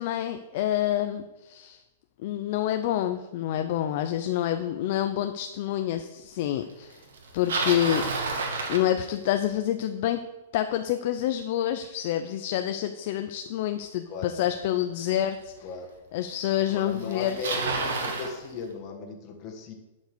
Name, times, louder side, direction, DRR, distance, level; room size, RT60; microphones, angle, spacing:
voice 1, 0.0-1.8 2.2-7.0 7.3-8.1 8.7-10.2 10.5-15.5 16.1-17.4, left 12 dB, 40° left, 7 dB, 0.5 m, -27 dB
Bicycle, 7.1-9.5 14.5-14.6 15.5-15.6 16.6-16.7 16.9-18.3, right 3 dB, 80° right, 2.1 m, -30 dB
voice 2, 16.7-19.7, left 4 dB, 25° left, 3 dB, 1.5 m, -37 dB
11.5 x 5.3 x 6.7 m, 1.1 s
supercardioid pair, 170°, 0 cm